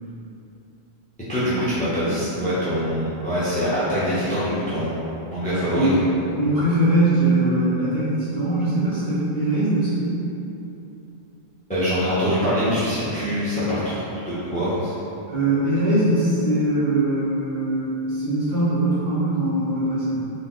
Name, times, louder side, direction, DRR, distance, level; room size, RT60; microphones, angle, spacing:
voice 1, 1.3-5.0 5.3-5.9 11.7-14.0 14.2-14.9, equal, 10° left, -12 dB, 0.7 m, -24 dB
voice 2, 5.7-6.0 6.3-10.1 15.2-20.1, right 1 dB, 35° right, -13 dB, 1.6 m, -21 dB
4.2 x 2.7 x 3.7 m, 2.9 s
omnidirectional pair, 1.1 m